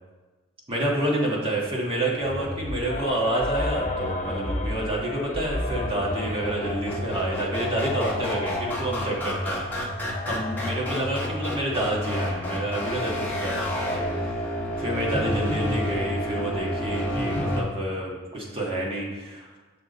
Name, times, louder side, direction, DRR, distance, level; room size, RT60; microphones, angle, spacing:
voice 1, 0.7-9.6 10.3-14.3 14.8-19.5, right 1 dB, 25° right, -3 dB, 1.6 m, -28 dB
sound 1, 2.2-17.6, equal, 10° left, 1.4 m, -30 dB
sound 2, 2.9-14.5, left 3 dB, 35° left, 0.6 m, -37 dB
6.9 x 6.0 x 4.1 m, 1.3 s
head